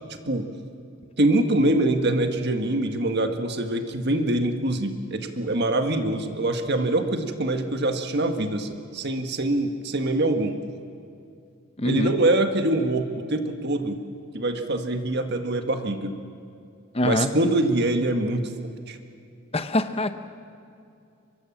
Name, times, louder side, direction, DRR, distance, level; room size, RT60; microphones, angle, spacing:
voice 1, 1.2-10.5 11.8-14.0 14.3-16.1 17.0-19.0, right 1 dB, 50° right, 6 dB, 1.7 m, -24 dB
voice 2, 11.8-12.2 16.9-17.4 19.5-20.1, left 1 dB, 30° left, 10 dB, 1.0 m, -24 dB
24.0 x 23.0 x 7.4 m, 2.5 s
head